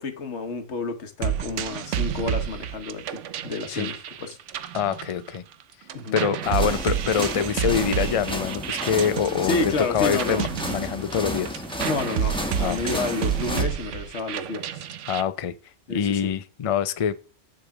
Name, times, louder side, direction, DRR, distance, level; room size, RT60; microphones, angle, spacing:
voice 1, 0.0-4.4 5.9-6.2 9.4-10.4 11.8-14.9 15.9-16.3, left 3 dB, 70° left, 1.5 m, -30 dB
sound 1, 1.2-5.6 5.9-15.2, right 9 dB, 85° right, 1.0 m, -30 dB
voice 2, 4.7-5.4 6.1-11.6 12.6-13.0 15.1-15.5 15.9-17.2, left 8 dB, 40° left, 0.5 m, -25 dB
sound 2, 6.4-13.6, left 1 dB, 5° left, 1.1 m, -32 dB
6.9 x 6.7 x 4.7 m
omnidirectional pair, 1.2 m